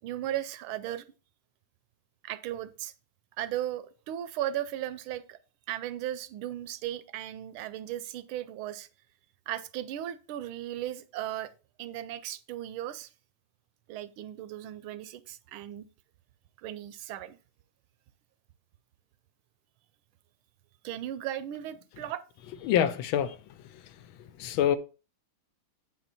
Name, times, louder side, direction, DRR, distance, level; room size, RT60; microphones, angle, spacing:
voice 1, 0.0-1.0 2.2-2.9 3.4-5.4 5.7-8.9 9.5-11.5 11.8-13.1 13.9-15.9 16.6-17.4 20.8-22.2, right 12 dB, 80° right, 1.4 m, -36 dB
voice 2, 22.6-23.4 23.7-23.8 24.2-24.8, left 10 dB, 80° left, 1.3 m, -26 dB
8.2 x 4.4 x 4.1 m
omnidirectional pair, 2.3 m